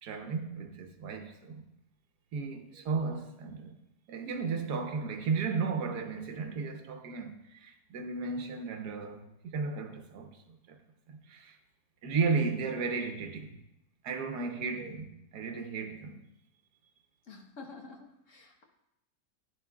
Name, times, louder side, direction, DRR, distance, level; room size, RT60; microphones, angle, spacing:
voice 1, 0.0-1.6 2.3-3.7 4.1-10.3 10.7-10.8 11.1-11.6 12.0-13.6 14.0-16.2, right 4 dB, 85° right, 1.5 m, -34 dB
voice 2, 2.7-3.2 14.7-15.0 17.2-18.6, left 2 dB, 55° left, 1.4 m, -49 dB
11.0 x 10.0 x 2.3 m
omnidirectional pair, 1.7 m